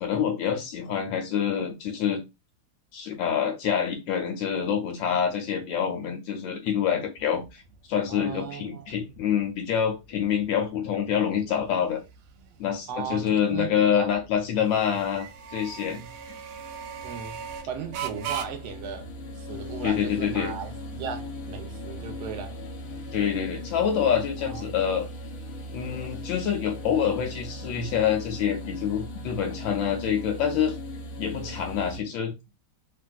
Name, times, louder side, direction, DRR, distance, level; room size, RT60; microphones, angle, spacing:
voice 1, 0.0-2.2 2.9-7.6 7.9-12.0 12.6-16.0 19.8-20.5 23.1-25.1 25.7-30.8 31.2-32.3, left 8 dB, 75° left, 1.3 m, -26 dB
sound 1, 7.2-24.4, right 8 dB, 90° right, 1.4 m, -42 dB
voice 2, 8.1-8.9 12.9-14.1 14.9-15.0 15.9-16.1 17.0-19.1 19.4-22.6 24.4-24.6 31.4-31.6, right 7 dB, 70° right, 1.0 m, -37 dB
sound 2, 15.2-32.0, left 1 dB, 55° left, 1.2 m, -39 dB
3.5 x 2.5 x 2.3 m
omnidirectional pair, 2.2 m